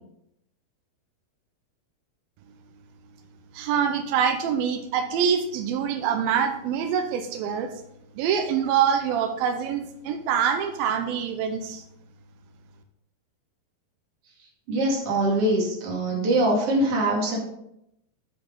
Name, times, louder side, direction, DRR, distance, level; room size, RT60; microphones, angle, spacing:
voice 1, 3.5-7.7 8.2-11.8, right 7 dB, 90° right, 6 dB, 2.5 m, -25 dB
voice 2, 14.7-17.4, right 1 dB, 45° right, -3 dB, 2.8 m, -23 dB
8.3 x 7.6 x 3.9 m, 0.80 s
omnidirectional pair, 4.2 m